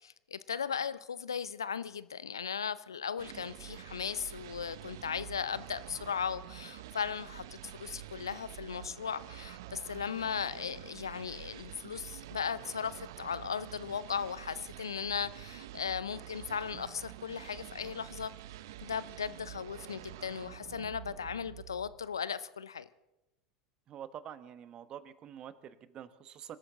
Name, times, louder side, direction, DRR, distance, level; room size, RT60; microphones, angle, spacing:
voice 1, 0.0-18.3 18.8-22.9, left 7 dB, 80° left, 17 dB, 0.6 m, -37 dB
sound 1, 3.2-22.2, right 14 dB, 65° right, 0.6 m, -48 dB
voice 2, 23.9-26.6, right 9 dB, 40° right, 14 dB, 1.1 m, -47 dB
26.0 x 13.0 x 3.9 m, 0.95 s
figure-of-eight pair, 80°, 2 cm